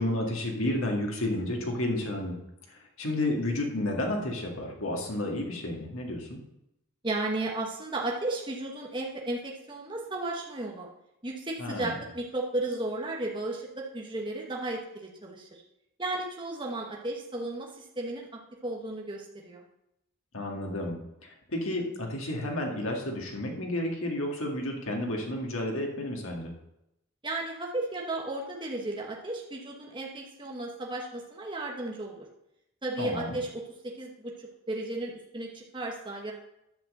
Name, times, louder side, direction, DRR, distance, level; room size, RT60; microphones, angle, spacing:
voice 1, 0.0-2.4 2.7-6.4 11.6-11.9 20.3-21.0 21.2-26.5 33.0-33.4, left 1 dB, 85° left, 0 dB, 2.0 m, -31 dB
voice 2, 7.0-10.9 11.2-15.6 16.0-18.3 18.6-19.6 27.2-32.3 32.8-33.7 34.0-36.3, right 2 dB, 20° right, -1 dB, 1.1 m, -34 dB
10.5 x 5.3 x 7.7 m, 0.86 s
head